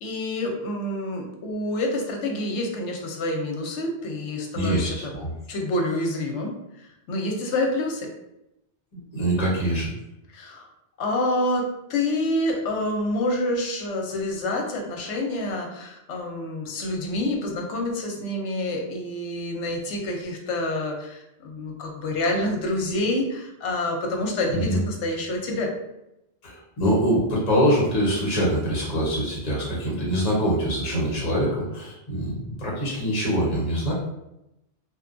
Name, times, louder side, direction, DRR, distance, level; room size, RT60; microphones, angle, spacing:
voice 1, 0.0-5.1 5.5-6.5 6.8-8.1 10.3-10.7 11.0-25.7, left 1 dB, 85° left, 1 dB, 0.9 m, -27 dB
voice 2, 4.5-5.3 9.1-9.9 24.5-24.8 26.4-33.9, equal, 35° left, -6 dB, 0.9 m, -24 dB
2.7 x 2.2 x 2.5 m, 0.87 s
omnidirectional pair, 1.2 m